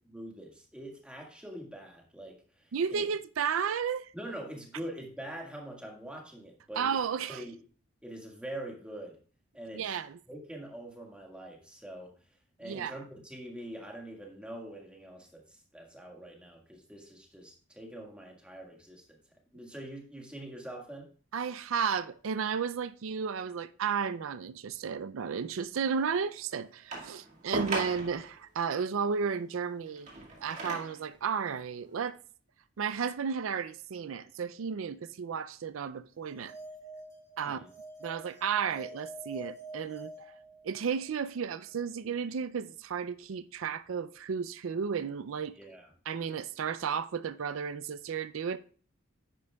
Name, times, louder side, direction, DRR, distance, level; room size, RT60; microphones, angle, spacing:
voice 1, 0.1-3.0 4.1-6.9 7.3-7.6 8.0-9.2 9.5-10.0 10.3-12.1 12.6-19.2 19.5-21.1 37.4-37.7 45.5-45.9, right 1 dB, 5° right, 1.7 m, -44 dB
voice 2, 2.7-4.1 6.8-7.4 9.7-10.2 12.6-12.9 21.3-30.1 30.4-32.2 32.8-36.6 37.4-37.6 38.0-40.3 40.6-45.6 46.1-48.6, right 6 dB, 90° right, 0.4 m, -33 dB
sound 1, 26.9-28.3 29.9-31.1 31.9-32.0, right 2 dB, 35° right, 2.0 m, -37 dB
sound 2, 36.2-41.0, right 1 dB, 15° left, 1.7 m, -47 dB
10.0 x 9.5 x 2.3 m
head